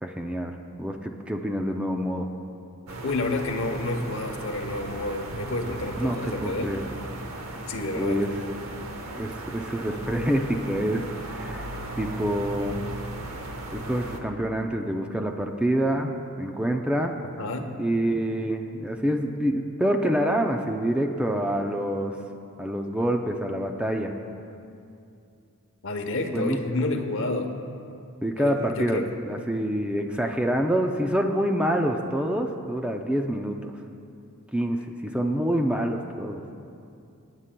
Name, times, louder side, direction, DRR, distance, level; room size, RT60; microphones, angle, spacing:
voice 1, 0.0-2.3 6.0-6.8 8.0-8.4 9.1-11.7 12.0-12.8 13.7-16.1 16.4-17.2 17.8-22.1 22.6-24.1 26.3-26.6 28.2-33.7 34.5-36.4, right 1 dB, 5° right, 3 dB, 0.5 m, -26 dB
sound 1, 2.9-14.2, right 2 dB, 65° right, 0.9 m, -37 dB
voice 2, 3.0-6.8 7.7-8.2 17.4-17.7 25.8-27.5 28.4-29.1, left 2 dB, 60° left, 5 dB, 0.9 m, -29 dB
26.5 x 9.7 x 2.2 m, 2.5 s
head